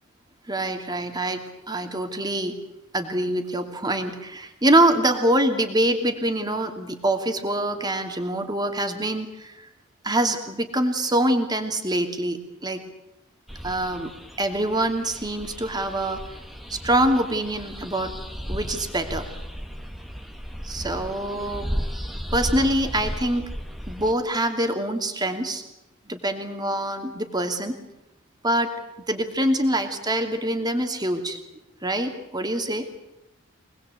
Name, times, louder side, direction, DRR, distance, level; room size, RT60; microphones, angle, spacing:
voice 1, 0.5-2.5 2.9-9.7 10.0-12.8 13.6-14.1 14.4-16.2 16.7-18.1 18.5-19.3 20.6-21.7 22.3-23.5 23.9-25.6 26.1-27.8 28.4-28.7 29.1-31.4 31.8-32.9, right 1 dB, 20° right, 6 dB, 2.8 m, -24 dB
sound 1, 13.5-24.1, equal, ahead, 1.8 m, -35 dB
25.0 x 20.0 x 8.4 m, 0.91 s
head